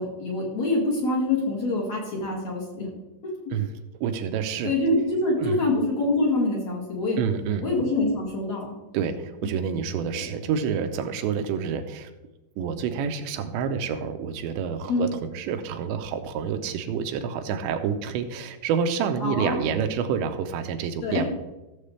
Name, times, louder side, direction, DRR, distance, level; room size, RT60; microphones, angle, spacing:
voice 1, 0.0-2.9 4.6-7.2 7.6-8.6 14.9-15.1 19.2-19.6 21.0-21.2, left 2 dB, 45° left, -4 dB, 2.6 m, -25 dB
voice 2, 4.0-4.7 5.4-5.7 7.2-7.7 8.9-12.1 12.6-21.3, right 7 dB, 85° right, 7 dB, 3.0 m, -28 dB
15.5 x 7.4 x 3.3 m, 1.0 s
omnidirectional pair, 5.1 m